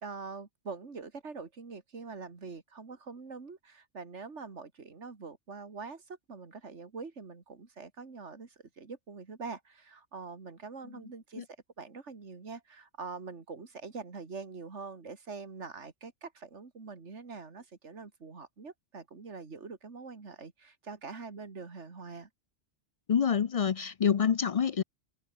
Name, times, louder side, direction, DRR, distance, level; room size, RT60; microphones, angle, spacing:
voice 1, 0.0-11.5 11.8-22.3, right 4 dB, 75° right, 2.6 m, -44 dB
voice 2, 23.1-24.8, left 7 dB, 60° left, 0.4 m, -27 dB
open air
omnidirectional pair, 1.2 m